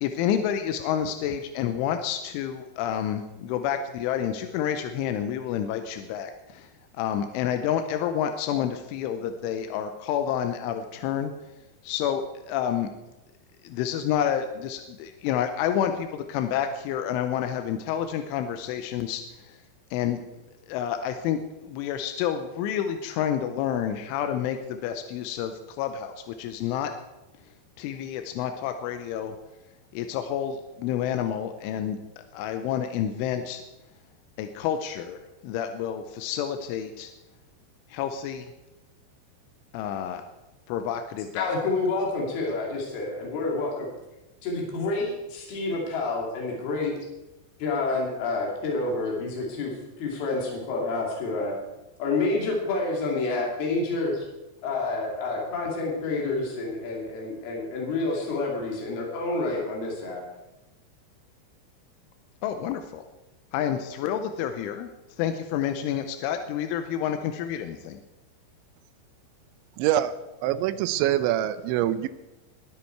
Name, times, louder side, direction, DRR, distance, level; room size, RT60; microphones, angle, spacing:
voice 1, 0.0-11.3 11.8-12.9 13.6-19.6 19.9-20.2 20.7-26.9 27.8-29.3 29.9-33.6 34.4-37.1 37.9-38.5 39.7-40.2 40.7-41.6 62.4-63.0 63.5-64.9 65.2-68.0, left 9 dB, 90° left, 7 dB, 3.2 m, -29 dB
voice 2, 41.4-43.9 44.4-46.9 47.6-51.5 52.0-54.3 54.6-60.2, left 3 dB, 60° left, -2 dB, 4.5 m, -28 dB
voice 3, 69.8-70.2 70.4-72.1, right 12 dB, 80° right, 13 dB, 2.9 m, -24 dB
21.5 x 8.6 x 4.6 m, 1.0 s
omnidirectional pair, 5.4 m